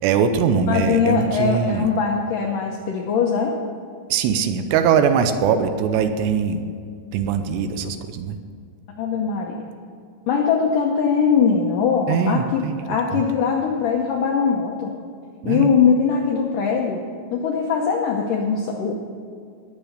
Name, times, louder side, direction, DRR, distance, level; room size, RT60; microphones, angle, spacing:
voice 1, 0.0-1.9 4.1-6.6 7.1-8.4 12.1-12.8 13.1-13.2 15.4-15.7, right 7 dB, 80° right, 8 dB, 2.8 m, -21 dB
voice 2, 0.7-3.6 9.0-9.6 10.3-14.9 15.5-17.0 17.3-19.0, left 6 dB, 80° left, 1 dB, 1.9 m, -21 dB
20.0 x 6.8 x 6.6 m, 2.2 s
omnidirectional pair, 5.1 m